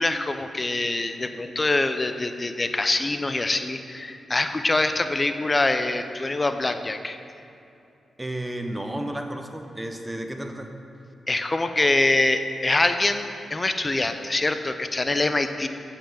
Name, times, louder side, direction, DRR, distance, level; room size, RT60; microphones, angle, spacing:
voice 1, 0.0-7.2 11.3-15.7, left 2 dB, 35° left, 9 dB, 0.7 m, -24 dB
voice 2, 8.2-10.7, right 1 dB, 15° right, 5 dB, 1.0 m, -32 dB
8.6 x 5.9 x 7.1 m, 2.7 s
supercardioid pair, 45°, 0 cm